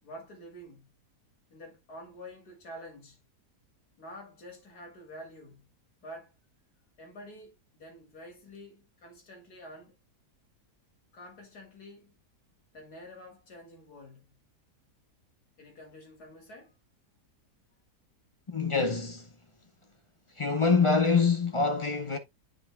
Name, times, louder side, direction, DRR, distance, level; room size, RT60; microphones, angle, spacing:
voice 1, 0.0-0.9 1.5-3.2 4.0-5.7 6.0-6.3 7.0-10.0 11.1-12.2 12.7-14.4 15.6-16.7, equal, 65° left, 3.0 m, -48 dB
voice 2, 18.5-19.3 20.4-22.2, left 4 dB, 35° left, 0.5 m, -25 dB
9.8 x 5.7 x 2.2 m
omnidirectional pair, 1.8 m